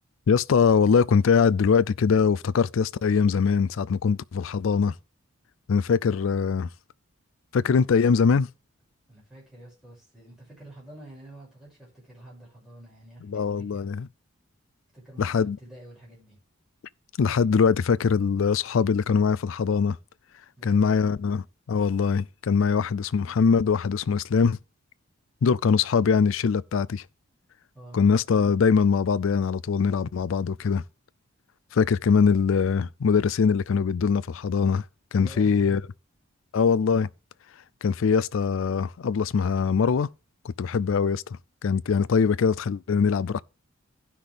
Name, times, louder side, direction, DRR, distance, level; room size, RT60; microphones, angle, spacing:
voice 1, 0.3-4.9 5.7-6.7 7.5-8.5 13.3-14.1 15.2-15.6 17.2-20.0 20.6-24.6 25.4-27.0 27.9-30.8 31.7-34.8 35.1-35.8 36.5-37.1 37.8-40.1 40.4-41.2 41.6-43.4, left 5 dB, 70° left, 0.4 m, -22 dB
voice 2, 9.1-13.9 14.9-16.4 20.6-21.1 27.7-28.0 35.2-35.8, right 1 dB, ahead, 6.0 m, -48 dB
15.5 x 5.8 x 3.4 m
head